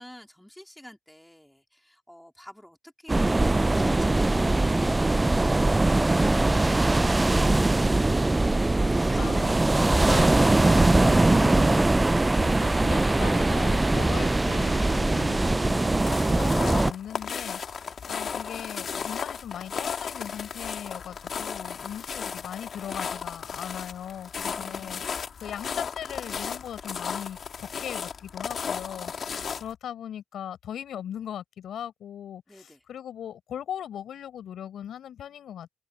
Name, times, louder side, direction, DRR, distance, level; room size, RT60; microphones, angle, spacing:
voice 1, 0.0-8.2 17.8-18.0 21.8-21.9 24.4-25.2 28.6-29.6 32.5-32.8, equal, 5° left, 3.6 m, -49 dB
sound 1, 3.1-16.9, right 2 dB, 15° right, 0.4 m, -21 dB
voice 2, 9.1-11.9 12.3-25.0 25.4-29.1 29.6-35.7, left 9 dB, 70° left, 4.9 m, -39 dB
sound 2, 16.0-29.7, left 6 dB, 50° left, 1.9 m, -35 dB
cardioid pair, 90°, 0 cm